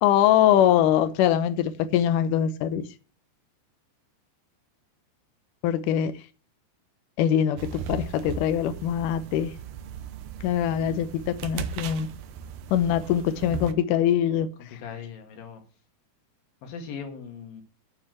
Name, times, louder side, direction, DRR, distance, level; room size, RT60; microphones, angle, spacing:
voice 1, 0.0-2.8 5.6-6.1 7.2-9.5 10.4-12.1 12.7-14.5, left 10 dB, 80° left, 1.9 m, -23 dB
sound 1, 7.6-13.7, right 7 dB, 80° right, 2.9 m, -37 dB
voice 2, 14.8-15.6 16.6-17.6, left 6 dB, 60° left, 3.5 m, -39 dB
9.5 x 5.8 x 7.8 m
omnidirectional pair, 4.8 m